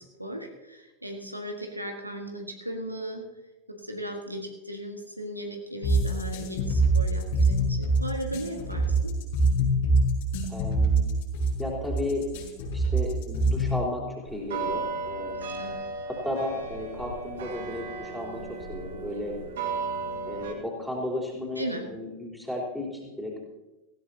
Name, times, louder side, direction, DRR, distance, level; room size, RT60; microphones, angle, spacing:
voice 1, 0.0-3.2 3.7-9.1 15.5-15.8 21.6-21.9, equal, 85° right, 2 dB, 1.5 m, -36 dB
sound 1, 5.8-13.8, right 2 dB, 55° left, 5.8 m, -24 dB
voice 2, 10.5-11.0 11.6-12.3 12.7-15.6 16.1-19.4 20.3-23.4, left 1 dB, ahead, -2 dB, 3.7 m, -34 dB
sound 2, 14.3-20.5, right 4 dB, 60° right, 2.4 m, -35 dB
18.0 x 15.5 x 2.9 m, 1.1 s
figure-of-eight pair, 90°, 0 cm